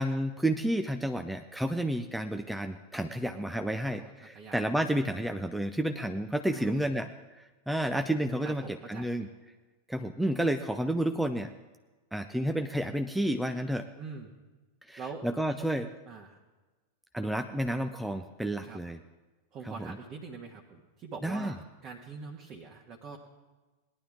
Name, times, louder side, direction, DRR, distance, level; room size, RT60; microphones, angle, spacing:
voice 1, 0.0-7.1 7.7-8.6 8.9-9.3 9.9-11.5 12.1-13.9 14.9-15.9 17.1-19.0 19.8-19.9 21.2-21.5, right 1 dB, 5° right, 6 dB, 0.6 m, -30 dB
voice 2, 3.8-4.6 6.5-6.9 8.4-9.1 14.0-14.3 15.0-15.2 15.6-15.7 16.0-16.4 18.6-18.8 19.5-23.2, right 5 dB, 35° right, 0 dB, 1.4 m, -44 dB
19.0 x 11.0 x 3.5 m, 1.2 s
figure-of-eight pair, 90°, 0 cm